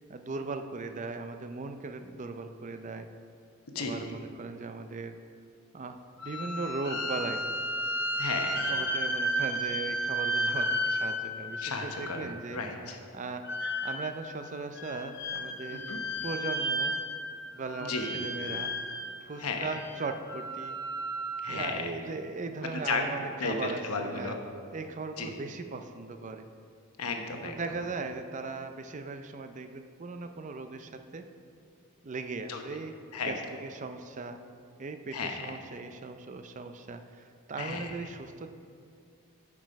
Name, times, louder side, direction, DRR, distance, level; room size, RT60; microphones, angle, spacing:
voice 1, 0.1-3.1 3.8-5.2 5.7-6.0 6.2-7.5 8.7-12.6 13.1-13.5 13.8-15.9 16.2-16.9 17.5-18.7 19.2-20.8 21.5-24.4 24.7-26.5 27.4-31.3 32.0-32.9 33.3-34.4 34.8-38.5, right 3 dB, 35° right, 7 dB, 0.4 m, -38 dB
sound 1, 6.2-12.4 13.4-14.3 14.8-17.4 17.6-19.1 19.6-21.7, equal, 55° left, 1.0 m, -33 dB
voice 2, 8.2-8.7 11.6-13.0 15.7-16.0 17.8-18.2 19.4-19.7 21.4-21.9 22.7-23.1 23.4-24.4 25.2-25.3 27.0-27.6 32.5-32.6 33.1-33.4 35.1-35.5 37.6-37.9, left 4 dB, 85° left, 3 dB, 1.0 m, -34 dB
8.7 x 6.2 x 5.1 m, 2.3 s
head